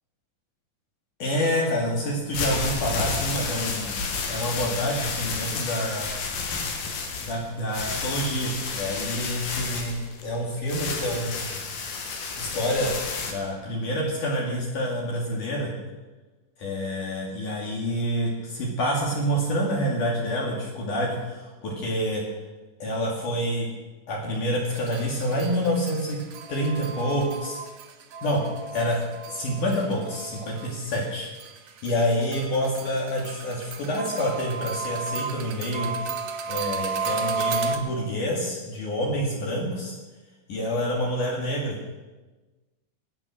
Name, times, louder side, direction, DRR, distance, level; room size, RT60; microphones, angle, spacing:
voice 1, 1.2-3.9 4.3-6.1 7.2-10.0 10.2-11.7 12.4-12.9 13.2-15.7 16.6-22.2 22.8-23.7 24.1-26.2 26.5-27.6 28.2-28.4 28.7-29.0 29.3-31.3 31.8-35.9 36.5-39.9 40.5-41.8, equal, 60° left, -3 dB, 3.6 m, -27 dB
sound 1, 2.1-13.3, left 4 dB, 80° left, 3.7 m, -31 dB
sound 2, 24.7-31.0 31.4-37.8, right 5 dB, 60° right, 2.2 m, -33 dB
22.0 x 9.1 x 6.4 m, 1.2 s
omnidirectional pair, 4.1 m